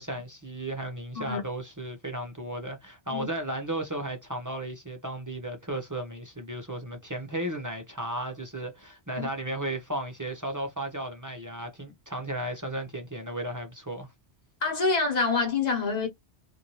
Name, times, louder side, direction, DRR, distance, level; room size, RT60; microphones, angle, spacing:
voice 1, 0.0-14.1, right 1 dB, 25° right, 0.4 m, -34 dB
voice 2, 14.6-16.1, left 4 dB, 40° left, 1.3 m, -26 dB
2.7 x 2.6 x 2.9 m
omnidirectional pair, 1.2 m